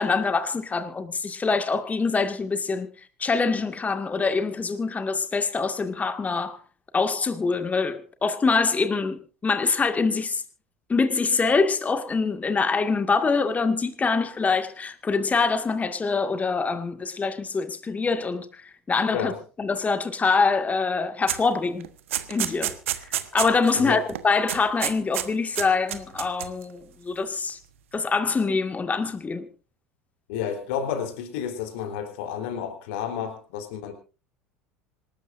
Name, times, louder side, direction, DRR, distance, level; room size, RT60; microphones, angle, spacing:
voice 1, 0.0-2.9 3.2-6.6 6.9-10.4 10.9-18.6 18.9-19.3 19.6-21.9 22.3-22.8 23.3-27.6 27.9-29.5, left 4 dB, 20° left, 2.0 m, -24 dB
sound 1, 21.3-21.5 21.8-23.8 24.1-24.2 24.5-25.3 25.6-26.6, right 12 dB, 70° right, 1.2 m, -29 dB
voice 2, 30.3-33.9, left 8 dB, 60° left, 3.8 m, -31 dB
26.5 x 13.0 x 2.6 m
figure-of-eight pair, 75°, 7 cm